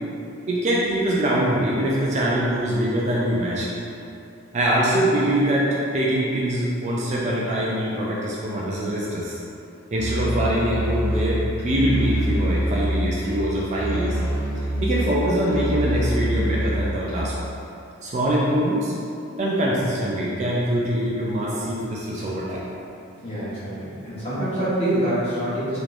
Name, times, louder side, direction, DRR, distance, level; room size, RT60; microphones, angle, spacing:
voice 1, 0.5-3.7 4.5-9.4 9.9-14.2 14.8-17.3 18.0-18.9 19.4-22.6, right 1 dB, 35° right, -5 dB, 0.3 m, -23 dB
Musical instrument, 9.9-17.5, right 1 dB, 50° right, 1.1 m, -25 dB
voice 2, 23.2-25.8, right 1 dB, 30° left, -11 dB, 1.0 m, -25 dB
3.5 x 2.9 x 2.4 m, 2.6 s
head